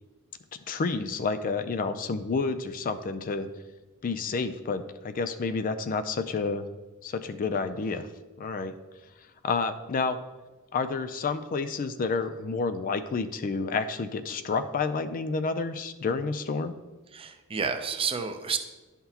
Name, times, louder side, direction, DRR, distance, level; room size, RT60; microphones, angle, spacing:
voice 1, 0.7-3.5 4.0-6.7 7.0-8.1 8.4-8.7 9.4-10.2 10.7-16.7, left 4 dB, 40° left, 10 dB, 0.4 m, -29 dB
voice 2, 17.1-18.6, right 5 dB, 25° right, 7 dB, 0.6 m, -30 dB
11.0 x 5.8 x 2.8 m, 1.2 s
head